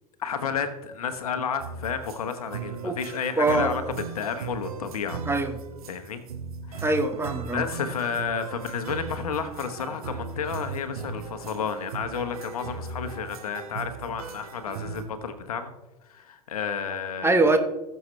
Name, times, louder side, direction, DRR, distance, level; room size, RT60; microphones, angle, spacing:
voice 1, 0.2-3.8 4.1-5.2 5.9-6.2 6.7-7.0 7.5-15.7 16.1-17.4, left 6 dB, 70° left, 8 dB, 1.2 m, -31 dB
sound 1, 1.6-15.1, right 5 dB, 70° right, 1.3 m, -38 dB
voice 2, 3.4-3.7 5.3-5.6 6.8-7.6 17.2-17.6, right 2 dB, 10° right, 6 dB, 1.2 m, -23 dB
20.5 x 6.8 x 3.2 m, 1.1 s
figure-of-eight pair, 80°, 19 cm